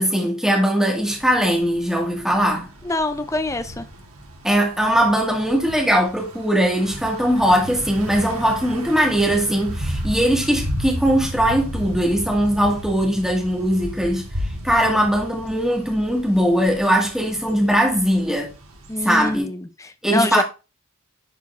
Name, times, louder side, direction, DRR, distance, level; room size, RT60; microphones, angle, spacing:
voice 1, 0.0-2.7 4.4-14.3 14.6-18.5 19.0-19.5 20.0-20.4, equal, ahead, 2.2 m, -20 dB
Thunder / Bicycle, 1.0-19.4, equal, 85° right, 2.4 m, -34 dB
voice 2, 2.8-3.8 18.9-20.4, left 2 dB, 15° left, 0.6 m, -24 dB
10.5 x 4.6 x 3.5 m
head